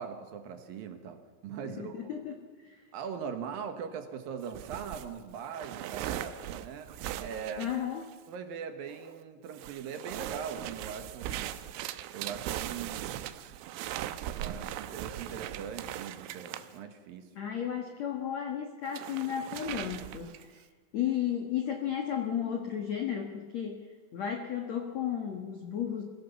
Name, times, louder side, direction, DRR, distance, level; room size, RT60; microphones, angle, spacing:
voice 1, 0.0-2.1 2.9-6.9 7.2-7.7 8.3-11.6 12.1-13.2 14.3-17.3, right 7 dB, 65° right, 7 dB, 2.5 m, -41 dB
voice 2, 1.6-2.4 2.6-2.8 7.6-8.1 17.3-20.4 20.9-23.8 24.1-26.0, left 9 dB, 80° left, 3 dB, 1.5 m, -33 dB
sound 1, 4.4-8.3 8.9-9.2 9.5-16.7 18.9-20.6, right 12 dB, 90° right, 3.4 m, -39 dB
22.5 x 16.0 x 7.2 m, 1.5 s
omnidirectional pair, 5.5 m